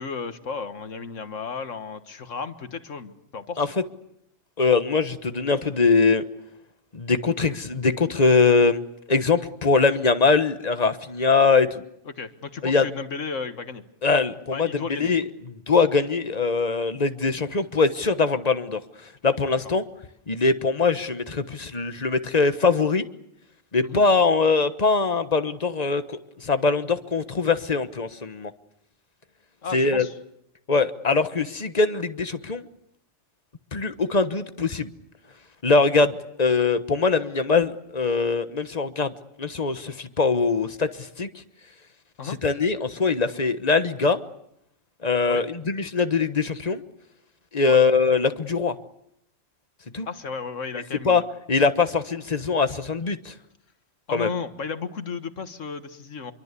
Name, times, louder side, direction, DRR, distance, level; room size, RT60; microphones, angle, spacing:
voice 1, 0.0-3.7 12.1-13.8 14.5-15.1 23.8-24.0 29.6-30.2 42.2-42.4 45.3-45.5 47.7-47.8 50.1-51.3 54.1-56.3, left 5 dB, 75° left, 10 dB, 1.9 m, -34 dB
voice 2, 4.6-6.2 6.9-8.8 9.1-11.8 12.6-12.9 14.0-15.3 15.7-18.8 19.2-19.8 20.3-23.0 23.7-26.0 26.4-28.5 29.7-30.1 30.7-32.7 33.7-34.9 35.6-39.1 39.4-41.3 42.4-44.2 45.0-46.8 47.5-48.7 49.9-50.1 51.0-51.2 51.5-53.3 54.1-54.3, left 4 dB, 35° left, 10 dB, 1.3 m, -22 dB
27.0 x 23.5 x 8.4 m, 0.78 s
omnidirectional pair, 1.3 m